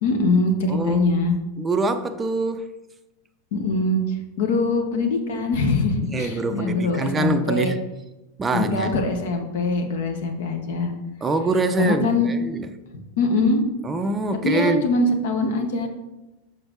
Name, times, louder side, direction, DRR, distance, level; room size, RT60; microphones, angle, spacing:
voice 1, 0.0-1.3 3.5-4.0 4.4-7.7 8.5-10.9 11.8-12.3 13.2-13.6 14.4-15.9, left 2 dB, 55° left, 0.9 m, -22 dB
voice 2, 0.7-1.1 1.6-2.6 6.1-7.8 8.4-8.9 11.2-12.7 13.8-14.9, right 3 dB, 15° right, 0.5 m, -24 dB
6.8 x 5.3 x 3.7 m
figure-of-eight pair, 90°, 0 cm